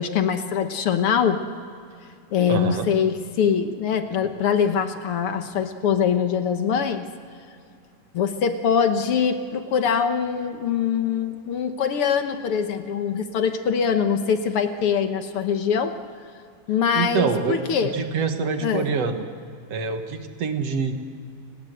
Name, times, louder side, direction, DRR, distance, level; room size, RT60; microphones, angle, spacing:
voice 1, 0.0-1.4 2.3-7.1 8.1-15.9 16.7-17.9 18.6-18.9, left 7 dB, 60° left, 8 dB, 1.5 m, -23 dB
voice 2, 2.5-2.9 16.9-19.2 19.7-20.9, right 5 dB, 55° right, 6 dB, 2.2 m, -25 dB
29.5 x 19.5 x 7.9 m, 2.4 s
omnidirectional pair, 3.9 m